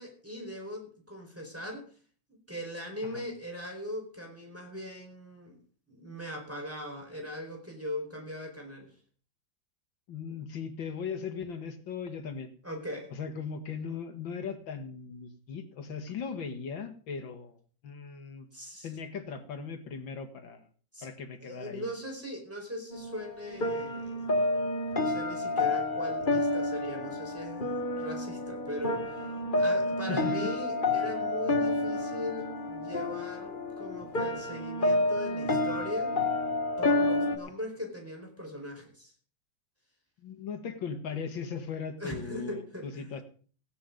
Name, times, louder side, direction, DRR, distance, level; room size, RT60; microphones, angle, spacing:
voice 1, 0.0-1.9 2.3-5.6 5.9-8.9 10.3-10.4 12.6-13.1 18.5-18.9 20.9-21.1 21.4-24.3 25.0-36.2 36.8-39.1 42.0-43.1, equal, 5° right, 2 dB, 4.4 m, -40 dB
voice 2, 10.1-12.5 13.1-17.6 17.8-18.5 18.8-20.7 21.0-21.9 30.1-30.4 40.2-43.2, left 6 dB, 90° left, 8 dB, 2.5 m, -38 dB
sound 1, 22.9-37.4, left 2 dB, 30° left, 1.4 m, -29 dB
16.0 x 10.5 x 5.3 m, 0.43 s
omnidirectional pair, 2.0 m